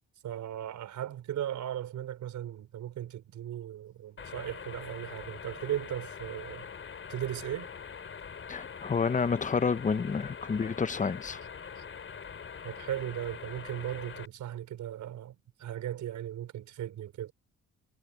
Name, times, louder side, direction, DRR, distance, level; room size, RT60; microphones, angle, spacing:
voice 1, 0.2-6.7 7.1-7.7 11.8-11.9 12.6-17.3, right 11 dB, 75° right, 5.4 m, -37 dB
sound 1, 4.2-14.3, left 6 dB, 45° left, 4.2 m, -44 dB
voice 2, 8.5-11.4, left 5 dB, 25° left, 0.8 m, -29 dB
cardioid pair, 90°, 30 cm